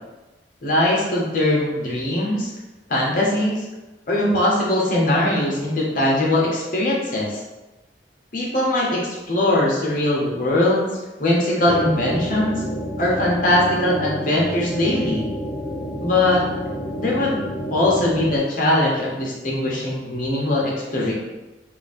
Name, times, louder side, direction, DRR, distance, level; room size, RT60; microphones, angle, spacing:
voice 1, 0.6-2.5 2.9-3.6 4.1-7.4 8.3-10.8 11.2-12.6 13.0-15.3 16.0-16.4 17.0-17.4 17.7-21.1, left 1 dB, 50° left, -4 dB, 1.0 m, -21 dB
sound 1, 11.7-18.4, equal, 20° left, 0.4 m, -30 dB
3.0 x 2.5 x 4.0 m, 1.1 s
head